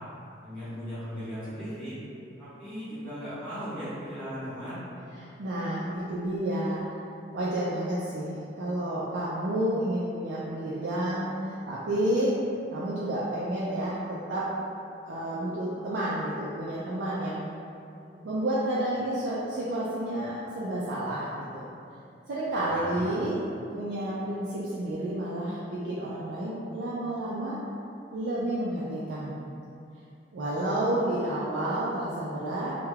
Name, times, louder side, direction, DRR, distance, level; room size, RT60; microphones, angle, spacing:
voice 1, 0.4-2.0 2.4-4.8 22.5-23.1, equal, 10° left, -15 dB, 0.7 m, -37 dB
voice 2, 5.2-7.0 7.3-12.4 12.7-14.5 15.1-17.4 18.2-21.7 22.3-23.4 23.7-27.6 28.1-29.4 30.3-32.8, right 1 dB, 80° right, -8 dB, 0.4 m, -30 dB
2.3 x 2.2 x 3.2 m, 2.6 s
head